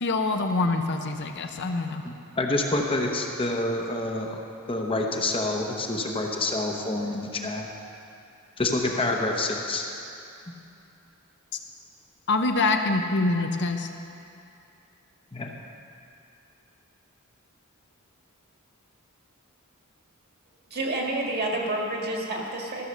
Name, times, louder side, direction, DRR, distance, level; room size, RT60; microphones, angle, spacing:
voice 1, 0.0-2.0 12.3-13.9, left 3 dB, 55° left, 5 dB, 0.7 m, -25 dB
voice 2, 2.0-4.4 4.7-7.7 8.6-9.9 15.3-15.5, left 2 dB, 25° left, 1 dB, 0.9 m, -27 dB
voice 3, 20.7-22.8, right 1 dB, 45° right, -1 dB, 1.7 m, -29 dB
14.0 x 6.4 x 6.5 m, 2.7 s
head